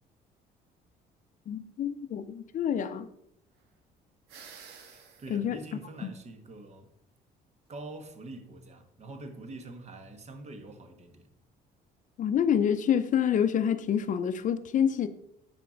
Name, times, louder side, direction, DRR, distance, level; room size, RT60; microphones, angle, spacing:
voice 1, 1.5-3.1 5.3-5.6 6.0-6.1 12.2-15.1, left 8 dB, 50° left, 0.6 m, -27 dB
sound 1, 4.3-5.4, right 6 dB, 85° right, 1.4 m, -50 dB
voice 2, 4.9-6.9 7.7-11.3, right 2 dB, 40° right, 1.4 m, -45 dB
9.1 x 4.4 x 5.1 m
cardioid pair, 110°, 17 cm